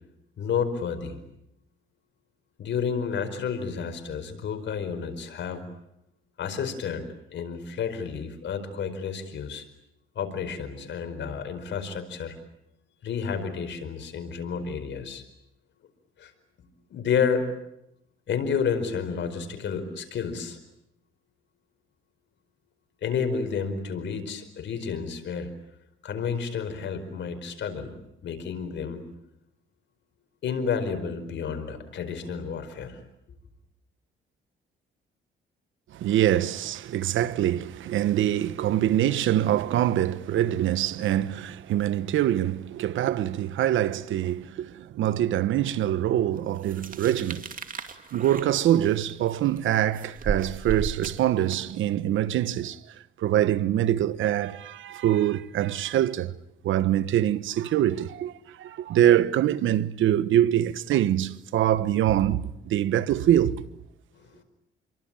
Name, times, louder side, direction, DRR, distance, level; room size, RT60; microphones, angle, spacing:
voice 1, 0.4-1.2 2.6-5.7 6.4-9.6 10.1-12.3 13.0-15.2 16.2-16.3 16.9-17.5 18.3-20.6 23.0-25.5 26.0-29.0 30.4-33.0 64.2-64.4, left 6 dB, 65° left, 4.8 m, -30 dB
voice 2, 35.9-47.5 48.1-52.8 53.2-56.3 56.6-63.6, right 12 dB, 80° right, 1.2 m, -24 dB
sound 1, 46.6-51.8, right 5 dB, 45° right, 2.6 m, -36 dB
27.5 x 23.5 x 8.9 m
cardioid pair, 90°, 20 cm